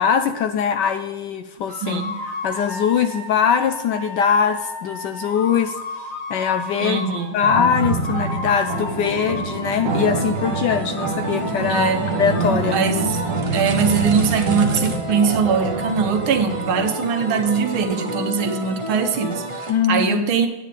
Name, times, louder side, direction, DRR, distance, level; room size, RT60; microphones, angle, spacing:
voice 1, 0.0-2.0 2.4-5.8 6.3-7.0 7.3-11.9 12.2-12.8 19.7-20.2, left 7 dB, 75° left, 8 dB, 1.0 m, -21 dB
sound 1, 1.7-7.4 7.7-10.1 10.4-13.3, left 2 dB, 50° left, 2.4 m, -34 dB
voice 2, 1.8-2.2 6.8-7.4 11.7-12.0 12.7-13.2 13.5-20.5, right 6 dB, 80° right, 7 dB, 1.8 m, -21 dB
sound 2, 7.4-16.9, right 4 dB, 65° right, 1.5 m, -26 dB
sound 3, 9.9-19.7, right 1 dB, 40° right, 0.4 m, -30 dB
9.7 x 9.2 x 3.3 m, 1.1 s
omnidirectional pair, 2.2 m